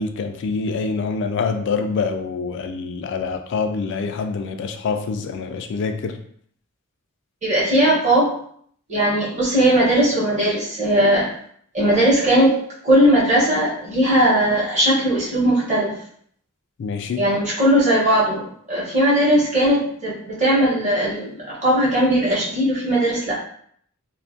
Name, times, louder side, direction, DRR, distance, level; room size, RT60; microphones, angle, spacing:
voice 1, 0.0-6.2 16.8-17.3, left 4 dB, 55° left, 6 dB, 0.3 m, -25 dB
voice 2, 7.4-8.3 8.9-11.3 11.7-12.6 12.8-15.9 17.2-23.4, right 1 dB, 35° right, -6 dB, 0.9 m, -18 dB
2.6 x 2.4 x 2.5 m, 0.63 s
head